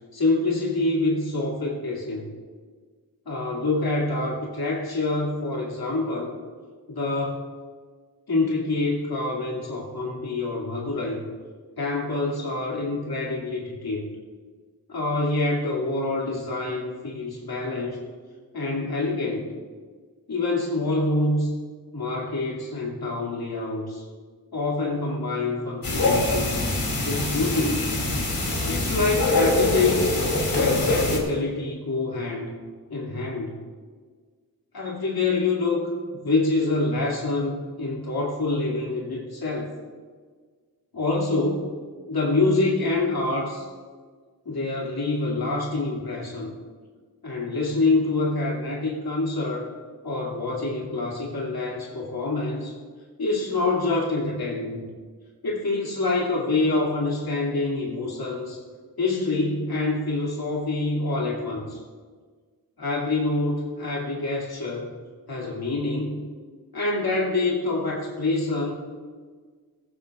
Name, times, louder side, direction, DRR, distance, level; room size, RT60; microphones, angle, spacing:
voice 1, 0.1-2.3 3.3-6.3 6.9-7.4 8.3-11.3 11.8-14.1 14.9-18.0 18.5-19.5 20.3-21.5 21.9-24.0 24.5-26.6 27.0-27.9 28.7-30.2 30.5-32.5 32.9-33.5 34.7-39.7 40.9-41.7 42.1-43.7 44.4-46.5 47.2-49.7 50.0-52.7 53.2-54.9 55.4-58.6 59.0-61.8 62.8-64.9 65.3-66.3 66.7-68.7, left 2 dB, 85° left, -3 dB, 2.5 m, -26 dB
sound 1, 25.8-31.2, left 2 dB, 65° left, 3.2 m, -23 dB
16.5 x 15.0 x 2.5 m, 1.5 s
wide cardioid pair, 100°, 37 cm